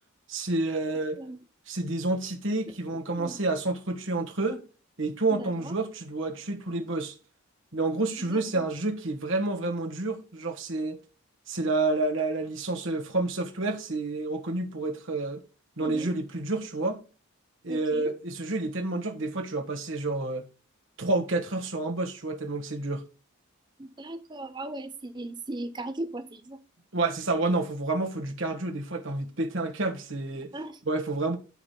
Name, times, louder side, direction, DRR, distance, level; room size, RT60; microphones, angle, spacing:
voice 1, 0.3-1.2 1.7-4.6 5.0-7.1 7.7-11.0 11.5-15.4 15.8-17.0 17.6-20.4 21.0-23.0 26.9-30.5 30.9-31.4, right 2 dB, 60° right, 1.4 m, -29 dB
voice 2, 0.9-1.4 2.9-3.4 5.4-5.7 8.3-8.6 15.8-16.1 17.7-18.1 23.8-26.6 30.5-30.8, right 2 dB, 20° right, 0.7 m, -38 dB
13.5 x 5.0 x 2.2 m
head